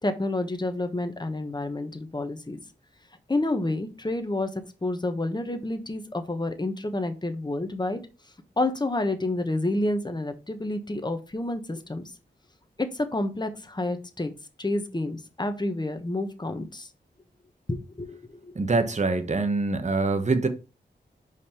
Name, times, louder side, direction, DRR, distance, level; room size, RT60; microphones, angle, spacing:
voice 1, 0.0-2.6 3.3-4.5 4.8-8.0 8.6-12.1 12.8-14.3 14.6-16.9 17.7-18.5, left 2 dB, 25° left, 1.2 m, -29 dB
voice 2, 18.5-20.5, right 3 dB, 40° right, 1.1 m, -24 dB
5.3 x 5.0 x 5.7 m
wide cardioid pair, 85°, 19 cm